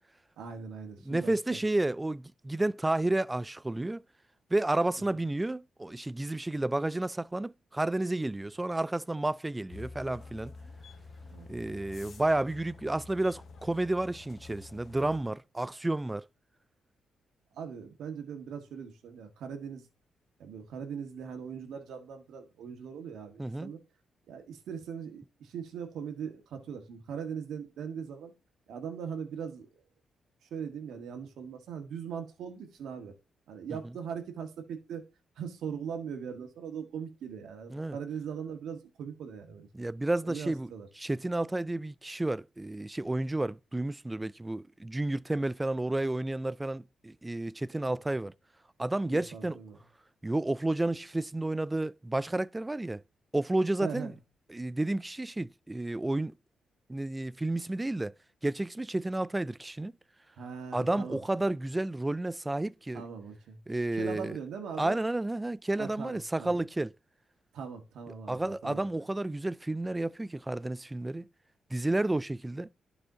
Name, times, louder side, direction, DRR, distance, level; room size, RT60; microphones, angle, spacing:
voice 1, 0.4-1.6 11.3-11.5 17.5-19.9 20.4-23.8 24.3-28.3 28.7-29.7 30.4-33.1 33.5-35.0 35.4-39.7 40.2-40.9 49.1-49.8 53.8-54.1 60.4-61.2 62.9-63.6 63.9-65.0 65.8-66.6 67.5-69.0, right 7 dB, 80° right, 1.6 m, -40 dB
voice 2, 1.1-4.0 4.5-10.5 11.5-16.3 23.4-23.7 33.7-33.8 37.7-38.0 39.7-40.7 41.0-48.3 48.8-49.6 50.2-53.0 53.3-54.1 54.5-56.4 56.9-58.1 58.4-59.9 60.7-63.0 63.7-64.4 64.8-66.9 68.3-71.3 71.7-72.7, right 2 dB, 15° right, 0.3 m, -31 dB
sound 1, 9.7-15.2, left 3 dB, 60° left, 1.0 m, -48 dB
11.5 x 4.8 x 2.9 m
cardioid pair, 70°, 0 cm